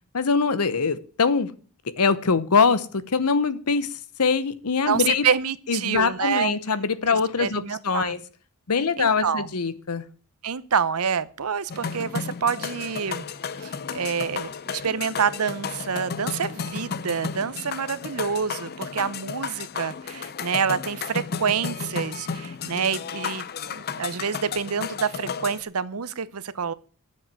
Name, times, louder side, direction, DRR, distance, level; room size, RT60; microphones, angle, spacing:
voice 1, 0.1-1.5 2.0-3.9 4.2-5.3 5.7-8.2 8.7-10.0, left 5 dB, 85° left, 0.9 m, -23 dB
voice 2, 4.9-6.6 7.1-8.2 9.0-9.5 10.4-13.3 13.6-26.7, right 6 dB, 75° right, 0.8 m, -27 dB
sound 1, 11.7-25.6, left 6 dB, 45° left, 0.6 m, -33 dB
10.5 x 7.6 x 7.6 m
head